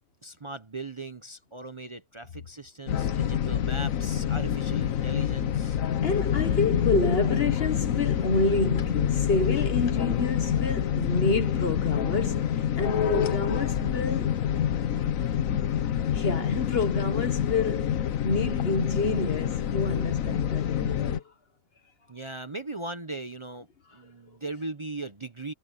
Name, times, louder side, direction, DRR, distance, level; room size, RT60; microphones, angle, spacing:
voice 1, 0.2-5.8 22.1-25.5, right 2 dB, 35° right, 0.5 m, -39 dB
sound 1, 2.9-21.2, left 9 dB, 60° left, 1.2 m, -27 dB
voice 2, 6.0-14.3 16.1-21.2, left 3 dB, 40° left, 1.5 m, -28 dB
omnidirectional pair, 1.7 m